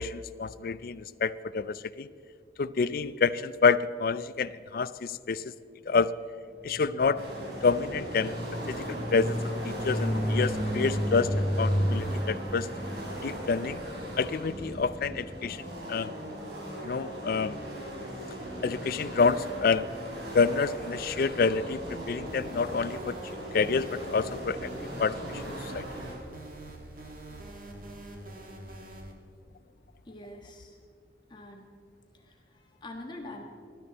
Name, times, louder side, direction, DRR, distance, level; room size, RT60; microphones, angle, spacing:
voice 1, 0.0-2.1 2.6-5.5 5.9-6.1 6.6-7.2 7.6-8.4 8.7-9.4 9.7-12.7 13.2-13.8 14.1-15.6 15.9-16.1 16.8-17.6 18.6-19.9 20.3-23.2 23.5-24.7 25.0-25.2 25.7-25.8, left 5 dB, 55° left, 16 dB, 0.4 m, -28 dB
sound 1, 6.7-16.6, equal, 5° right, 0.6 m, -33 dB
sound 2, 7.2-26.2, equal, 75° right, 4.3 m, -39 dB
sound 3, 22.3-29.1, right 1 dB, 50° right, 1.9 m, -45 dB
voice 2, 30.0-30.8 31.3-31.7 32.1-33.4, left 1 dB, 25° left, 1 dB, 1.5 m, -45 dB
19.5 x 12.0 x 4.1 m, 2.3 s
head